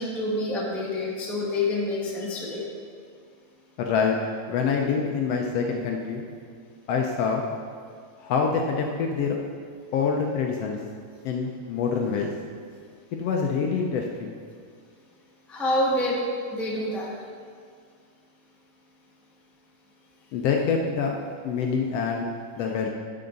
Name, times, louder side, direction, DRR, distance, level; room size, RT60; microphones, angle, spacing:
voice 1, 0.0-2.7 15.5-16.2 16.5-17.1, left 1 dB, ahead, -4 dB, 0.4 m, -27 dB
voice 2, 3.8-4.2 4.5-6.2 6.9-7.4 8.2-9.4 9.9-10.8 11.2-12.3 13.1-14.3 20.3-21.1 21.4-22.3 22.6-22.9, left 5 dB, 75° left, 1 dB, 1.5 m, -25 dB
11.0 x 7.9 x 4.0 m, 2.1 s
omnidirectional pair, 3.4 m